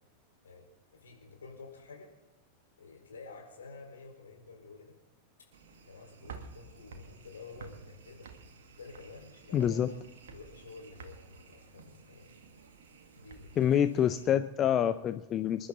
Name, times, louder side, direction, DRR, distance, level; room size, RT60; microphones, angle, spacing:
voice 1, 0.4-2.1 2.8-5.0 5.4-5.5 5.8-8.3 8.8-9.9 10.3-12.3 13.1-13.8, left 4 dB, 70° left, 1 dB, 4.6 m, -50 dB
sound 1, 5.5-14.3, right 5 dB, 60° right, 1.7 m, -52 dB
voice 2, 9.5-9.9 13.6-15.7, left 10 dB, 30° left, 11 dB, 0.6 m, -27 dB
27.0 x 11.5 x 4.0 m, 1.0 s
figure-of-eight pair, 90°, 0 cm